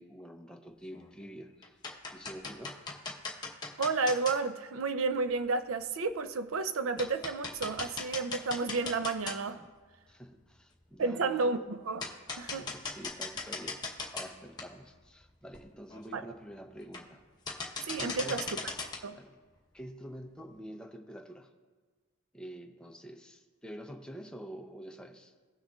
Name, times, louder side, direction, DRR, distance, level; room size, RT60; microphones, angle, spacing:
voice 1, 0.0-1.8 2.1-2.8 10.1-11.6 12.5-17.2 18.0-18.4 19.1-19.4 19.7-21.5 22.3-25.3, equal, 5° left, 0.6 m, -47 dB
sound 1, 0.9-1.3 1.6-4.4 5.5-5.6 6.1-6.2 6.6-6.7 7.0-9.7 10.1-10.2 11.4-11.5 12.0-14.3 14.6-14.7 15.2-15.3 15.5-15.6 15.9-16.2 16.8-17.2 17.5-19.0, left 4 dB, 20° left, 0.9 m, -39 dB
voice 2, 3.8-9.6 11.0-12.1 12.4-12.7 16.1-16.2 17.8-18.4 19.0-19.2, right 4 dB, 80° right, 0.5 m, -31 dB
17.5 x 6.4 x 2.4 m
head